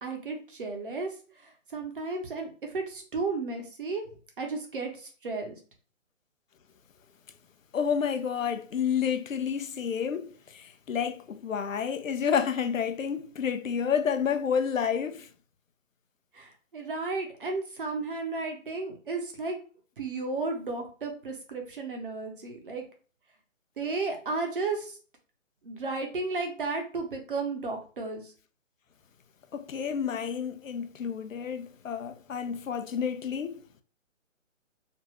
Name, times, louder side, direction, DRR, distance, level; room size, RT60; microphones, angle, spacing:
voice 1, 0.0-4.0 4.4-5.6 16.3-19.5 20.0-22.8 23.8-25.0 25.6-28.3, right 3 dB, 45° right, 0.8 m, -33 dB
voice 2, 7.7-15.3 29.5-33.6, left 7 dB, 85° left, 0.6 m, -30 dB
2.6 x 2.3 x 3.0 m
hypercardioid pair, 160°, 39 cm